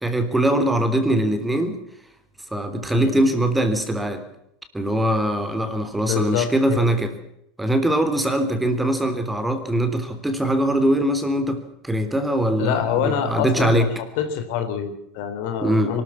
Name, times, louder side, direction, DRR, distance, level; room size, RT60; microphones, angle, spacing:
voice 1, 0.0-1.8 2.5-4.2 4.7-7.1 7.6-13.9 15.6-15.9, right 1 dB, 10° right, 8 dB, 3.3 m, -22 dB
voice 2, 6.1-6.9 12.6-13.9 14.2-16.0, left 8 dB, 65° left, 8 dB, 3.4 m, -25 dB
23.0 x 13.5 x 8.6 m, 0.77 s
hypercardioid pair, 90°, 0 cm